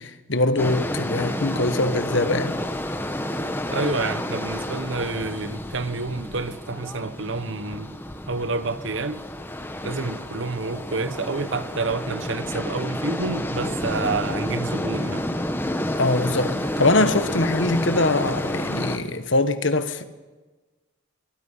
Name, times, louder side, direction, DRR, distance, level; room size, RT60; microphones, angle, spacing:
voice 1, 0.0-2.6 15.9-20.1, left 2 dB, 60° left, 1.4 m, -23 dB
sound 1, 0.6-19.0, left 1 dB, 10° left, 1.3 m, -30 dB
voice 2, 3.7-7.9 8.3-9.2 9.8-15.3, right 3 dB, 60° right, 1.0 m, -29 dB
24.0 x 21.5 x 5.6 m
head